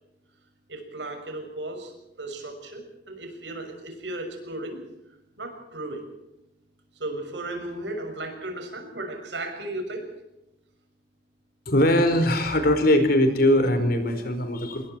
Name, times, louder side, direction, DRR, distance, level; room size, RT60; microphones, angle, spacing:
voice 1, 0.7-4.8 5.4-6.0 6.9-10.1, right 2 dB, 90° right, 5 dB, 6.4 m, -35 dB
voice 2, 11.7-14.9, left 1 dB, 60° left, 7 dB, 4.6 m, -21 dB
26.5 x 21.5 x 4.6 m, 0.89 s
head